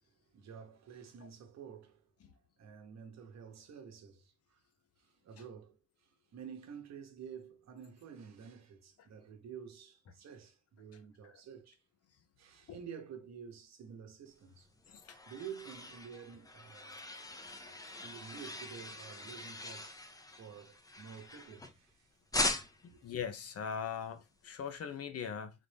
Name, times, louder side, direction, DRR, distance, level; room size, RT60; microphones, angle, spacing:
voice 1, 0.3-2.1 2.6-4.6 5.0-11.8 12.4-14.7 15.3-17.0 18.0-19.9 20.4-22.2 22.9-23.0, right 7 dB, 60° right, 1.0 m, -50 dB
sound 1, 14.6-21.9 22.3-23.0, left 2 dB, 10° left, 0.6 m, -41 dB
voice 2, 22.8-25.5, left 7 dB, 50° left, 0.8 m, -41 dB
3.8 x 2.6 x 3.3 m
cardioid pair, 90°, 30 cm